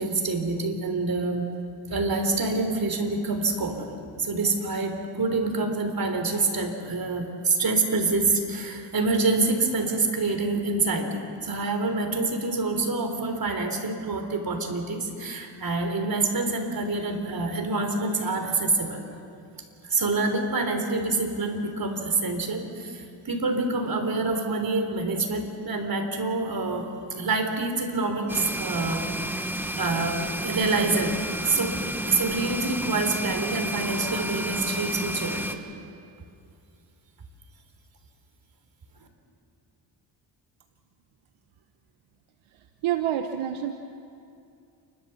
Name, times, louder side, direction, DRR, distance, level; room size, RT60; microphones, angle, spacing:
voice 1, 0.0-1.5 1.9-3.9 4.2-19.0 19.8-26.9 27.1-31.2 31.4-31.8 32.0-35.6, right 3 dB, 45° right, 4 dB, 3.8 m, -26 dB
sound 1, 28.3-35.5, right 1 dB, 5° right, 1.6 m, -31 dB
voice 2, 42.8-43.7, right 11 dB, 80° right, 7 dB, 1.1 m, -27 dB
29.5 x 13.0 x 7.1 m, 2.5 s
supercardioid pair, 60°, 48 cm